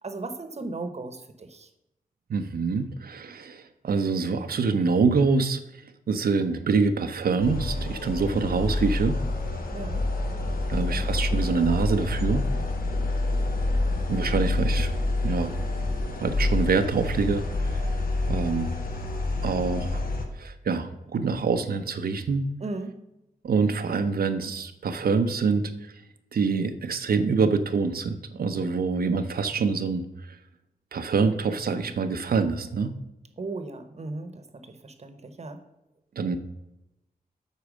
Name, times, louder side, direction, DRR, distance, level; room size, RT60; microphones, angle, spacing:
voice 1, 0.0-1.7 9.7-10.0 10.6-11.0 22.6-22.9 33.4-35.6, right 3 dB, 45° right, 8 dB, 1.0 m, -37 dB
voice 2, 2.3-5.6 6.1-9.2 10.7-12.4 14.1-14.9 15.2-15.5 16.2-17.9 18.3-18.7 19.4-20.0 20.4-22.5 23.4-25.9 26.3-30.4 30.9-32.9 36.2-36.4, right 4 dB, 80° right, 8 dB, 0.7 m, -25 dB
sound 1, 7.4-20.3, left 2 dB, 70° left, 1.3 m, -27 dB
8.3 x 4.6 x 6.2 m, 0.92 s
wide cardioid pair, 115°, 15 cm